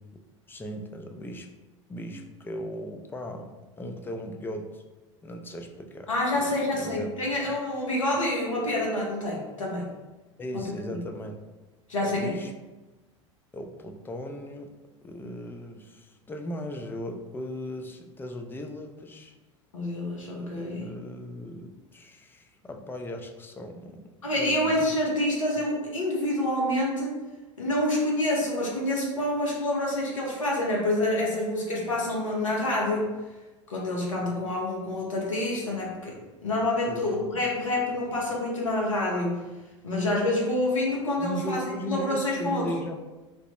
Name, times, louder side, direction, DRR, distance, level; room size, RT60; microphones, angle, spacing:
voice 1, 0.5-1.5 1.9-3.5 3.8-4.8 5.2-7.1 10.4-11.4 12.0-12.5 13.5-14.8 15.0-19.4 20.4-24.0 24.3-24.9 36.9-37.2 41.2-43.0, equal, 15° left, 4 dB, 0.3 m, -37 dB
voice 2, 6.1-9.9 10.5-10.6 10.9-11.0 11.9-12.3 19.7-20.9 24.2-27.2 27.6-33.1 33.7-39.4 39.8-42.7, left 1 dB, 85° left, -3 dB, 0.7 m, -27 dB
3.2 x 2.0 x 2.9 m, 1.1 s
hypercardioid pair, 75°, 16 cm